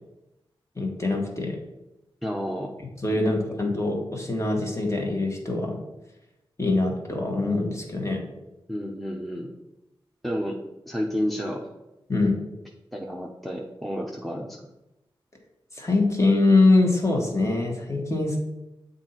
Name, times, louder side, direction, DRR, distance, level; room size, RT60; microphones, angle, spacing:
voice 1, 0.8-1.6 3.0-5.8 6.6-8.2 12.1-12.4 15.7-18.4, left 2 dB, 30° left, 0 dB, 1.5 m, -23 dB
voice 2, 2.2-2.8 3.1-3.3 8.7-9.5 10.2-10.6 10.9-11.7 12.9-14.6, equal, ahead, -1 dB, 0.8 m, -31 dB
7.3 x 2.7 x 5.6 m, 0.96 s
cardioid pair, 50°, 10 cm